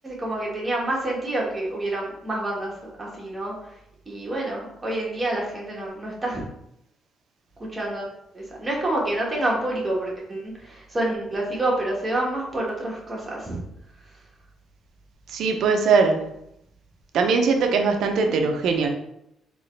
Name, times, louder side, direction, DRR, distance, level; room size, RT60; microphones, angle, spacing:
voice 1, 0.0-2.7 3.0-3.5 4.1-6.4 7.7-8.0 8.3-13.6 18.2-18.5, right 1 dB, 20° right, -3 dB, 1.4 m, -28 dB
voice 2, 15.3-16.2 17.1-18.9, right 4 dB, 75° right, 4 dB, 0.6 m, -20 dB
3.8 x 3.0 x 3.2 m, 0.80 s
cardioid pair, 90°, 0 cm